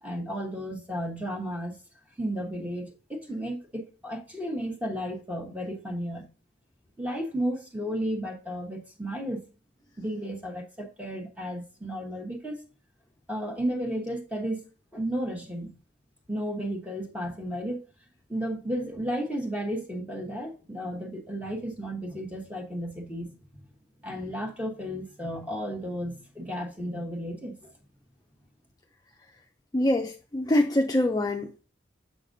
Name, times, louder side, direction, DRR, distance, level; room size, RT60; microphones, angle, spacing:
voice 1, 0.0-1.8 2.2-6.3 7.0-9.5 10.0-12.6 13.3-14.7 14.9-15.7 16.3-17.8 18.3-23.6 24.0-27.7, equal, 10° right, 1.1 m, -33 dB
voice 2, 29.7-31.6, left 1 dB, 20° left, 0.4 m, -24 dB
7.2 x 5.8 x 2.6 m
head